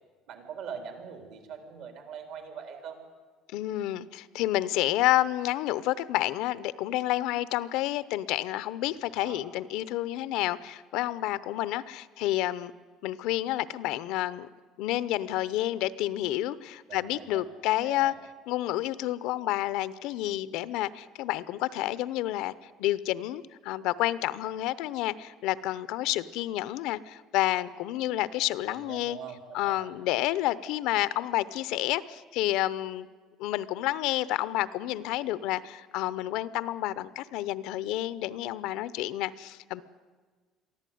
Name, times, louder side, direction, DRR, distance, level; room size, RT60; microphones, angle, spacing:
voice 1, 0.3-3.0 9.1-9.4 16.9-17.4 17.8-18.1 28.7-29.8, right 7 dB, 65° right, 4.1 m, -42 dB
voice 2, 3.5-12.7 13.0-14.5 14.8-18.1 18.5-22.5 22.8-29.2 29.5-33.1 33.4-39.8, left 15 dB, 75° left, 0.8 m, -29 dB
23.0 x 14.5 x 9.3 m
cardioid pair, 150°, 0 cm